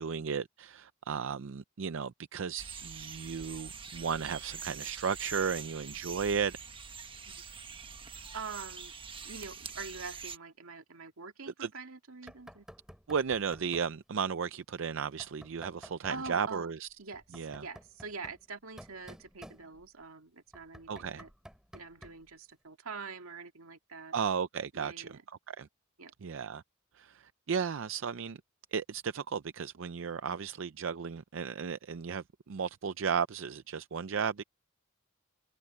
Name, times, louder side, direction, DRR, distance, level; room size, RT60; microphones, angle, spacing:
voice 1, 0.0-6.6 11.6-11.7 13.1-16.9 17.3-17.7 20.9-21.2 24.1-25.1 25.5-25.7 26.2-26.6 26.9-28.4 28.7-34.4, right 6 dB, 65° right, 0.5 m, -34 dB
sound 1, 2.6-10.4, right 6 dB, 25° right, 1.2 m, -45 dB
voice 2, 8.3-8.9 9.2-12.7 16.1-16.7 17.0-21.3 21.7-24.1 24.7-25.2 26.0-26.1, right 4 dB, 90° right, 2.2 m, -45 dB
Knock, 12.3-14.0 15.2-16.5 17.1-20.0 20.5-22.3, equal, 5° right, 2.7 m, -53 dB
head